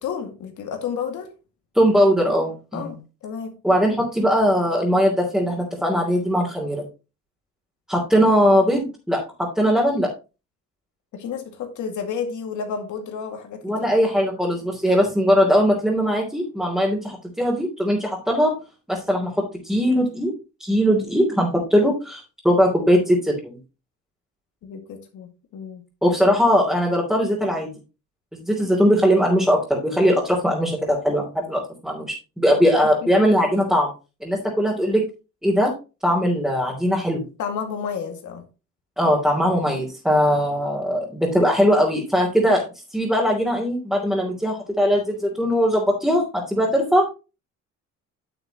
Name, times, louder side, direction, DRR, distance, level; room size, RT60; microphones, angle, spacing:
voice 1, 0.0-1.3 2.7-3.0 3.2-3.6 11.1-13.6 24.6-25.9 32.4-32.9 37.4-38.4, left 6 dB, 80° left, 4 dB, 2.1 m, -31 dB
voice 2, 1.7-3.0 3.6-6.8 7.9-10.1 13.6-18.5 18.9-20.3 20.6-23.6 26.0-27.7 28.3-33.9 34.2-35.0 35.4-35.7 36.0-37.2 39.0-42.6 42.9-47.1, equal, ahead, -4 dB, 3.0 m, -20 dB
9.1 x 8.0 x 2.9 m, 0.31 s
cardioid pair, 90°, 30 cm